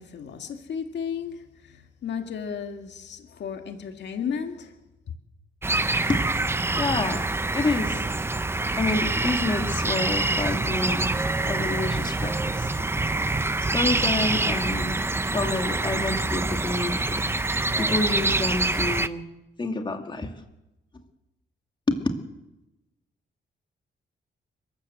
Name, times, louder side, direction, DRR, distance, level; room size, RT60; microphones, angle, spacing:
voice 1, 0.0-4.8, left 7 dB, 70° left, 2.2 m, -34 dB
sound 1, 5.6-19.1, right 2 dB, 15° right, 0.8 m, -26 dB
voice 2, 6.7-7.3 7.5-8.0 8.8-11.1 11.4-12.7 13.7-15.0 15.3-17.2 17.8-19.2 19.6-20.3 21.9-22.0, left 2 dB, 25° left, 2.3 m, -28 dB
29.5 x 13.0 x 8.1 m
cardioid pair, 125°, 18 cm